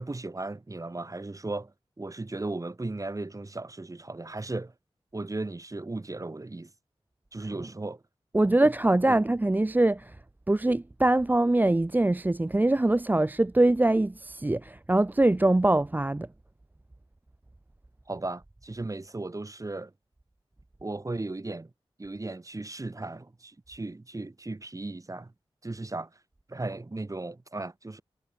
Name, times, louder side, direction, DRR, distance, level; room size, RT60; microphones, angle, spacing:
voice 1, 0.0-4.7 5.1-6.7 7.3-8.0 8.4-8.5 9.1-9.2 18.1-19.9 20.8-21.7 22.0-25.3 25.6-26.1 26.5-28.0, right 2 dB, 35° right, 1.6 m, -36 dB
voice 2, 8.3-10.0 10.5-16.3, right 2 dB, 20° right, 0.5 m, -23 dB
wide cardioid pair, 60°, 10 cm